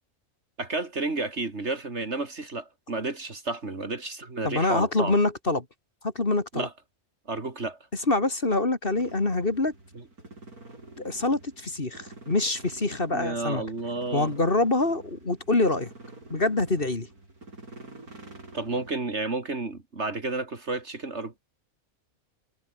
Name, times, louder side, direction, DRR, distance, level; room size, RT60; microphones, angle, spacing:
voice 1, 0.6-5.2 6.5-6.7 7.3-7.8 9.9-10.0 13.1-14.3 18.5-21.4, right 3 dB, 50° right, 3.1 m, -31 dB
voice 2, 4.4-5.6 6.0-6.7 8.1-9.7 11.0-13.6 14.1-15.9 16.3-17.1, left 2 dB, 40° left, 2.8 m, -25 dB
sound 1, 8.9-18.9, right 2 dB, 90° right, 6.6 m, -47 dB
omnidirectional pair, 1.5 m